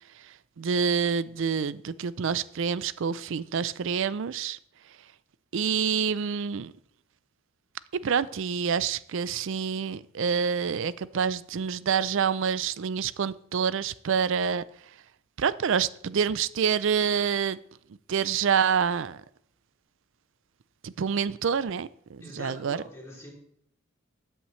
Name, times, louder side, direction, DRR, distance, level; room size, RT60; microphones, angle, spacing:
voice 1, 0.6-4.6 5.5-6.7 8.0-14.6 15.4-17.6 18.1-19.2 20.8-22.8, right 6 dB, 65° right, 0.4 m, -27 dB
voice 2, 22.2-23.3, left 1 dB, 15° left, 3.3 m, -43 dB
13.0 x 8.7 x 3.2 m
head